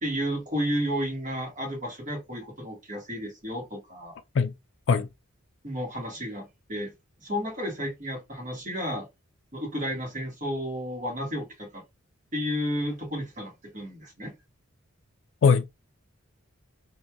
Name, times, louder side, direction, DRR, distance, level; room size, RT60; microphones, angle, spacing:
voice 1, 0.0-4.2 5.6-6.9 7.2-9.1 9.5-11.8 12.3-14.3, equal, 35° right, 1.4 m, -32 dB
voice 2, 4.4-4.5 4.9-5.1 15.4-15.6, left 5 dB, 60° left, 0.4 m, -20 dB
3.0 x 2.7 x 2.3 m
head